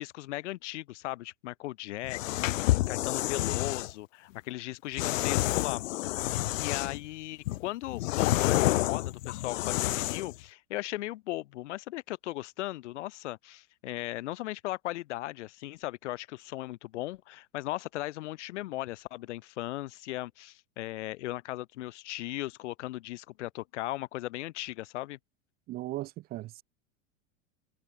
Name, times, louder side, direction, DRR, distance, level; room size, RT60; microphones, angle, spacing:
voice 1, 0.0-5.8 6.6-25.2, left 17 dB, 65° left, 4.5 m, -37 dB
sound 1, 2.0-3.9 5.0-7.1 7.5-10.4, left 16 dB, 85° left, 1.4 m, -29 dB
voice 2, 25.7-26.6, right 16 dB, 25° right, 1.4 m, -37 dB
supercardioid pair, 180°, 38 cm